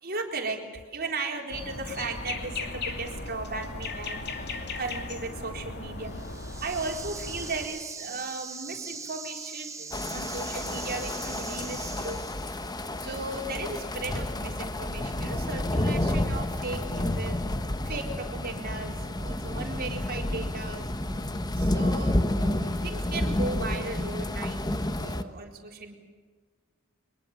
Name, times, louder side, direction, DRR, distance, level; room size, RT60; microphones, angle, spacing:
voice 1, 0.0-4.5 4.8-6.1 6.6-12.2 13.0-17.4 17.8-20.9 21.6-24.6 25.0-25.9, right 3 dB, 45° right, 1 dB, 4.1 m, -36 dB
sound 1, 1.5-7.7, left 3 dB, 50° left, 2.7 m, -37 dB
sound 2, 6.0-12.8, right 5 dB, 15° right, 1.2 m, -41 dB
sound 3, 9.9-25.2, left 1 dB, 20° left, 1.1 m, -30 dB
23.5 x 21.5 x 7.3 m, 1.5 s
head